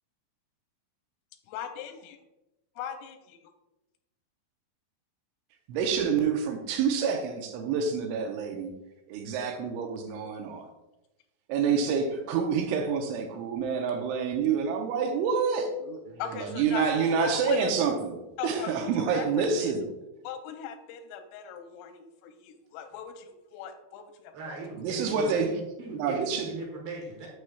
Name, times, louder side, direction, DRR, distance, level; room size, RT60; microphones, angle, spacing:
voice 1, 1.5-2.2 2.8-3.4 16.2-17.7 18.4-19.7 20.2-24.6, left 8 dB, 90° left, 6 dB, 3.1 m, -39 dB
voice 2, 5.7-8.7 9.1-10.7 11.5-16.0 16.3-19.9 24.8-25.5 25.9-26.5, right 6 dB, 80° right, 4 dB, 3.0 m, -28 dB
voice 3, 16.1-16.8 24.3-27.3, right 3 dB, 65° right, -2 dB, 2.8 m, -40 dB
9.8 x 6.4 x 2.3 m, 0.97 s
omnidirectional pair, 5.6 m